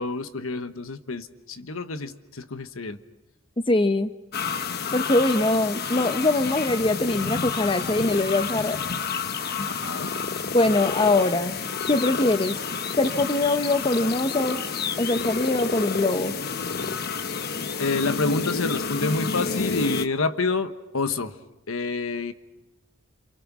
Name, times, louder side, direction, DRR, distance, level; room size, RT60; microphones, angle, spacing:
voice 1, 0.0-3.0 9.7-10.1 17.8-21.3 21.7-22.3, left 3 dB, 80° left, 10 dB, 1.3 m, -28 dB
voice 2, 3.7-4.1 4.9-8.8 10.5-11.6 11.9-12.6 13.0-14.7 15.0-16.3, left 2 dB, 25° left, 8 dB, 0.8 m, -22 dB
sound 1, 4.3-20.1, left 5 dB, 50° left, 1.0 m, -29 dB
28.0 x 27.0 x 6.1 m, 0.95 s
head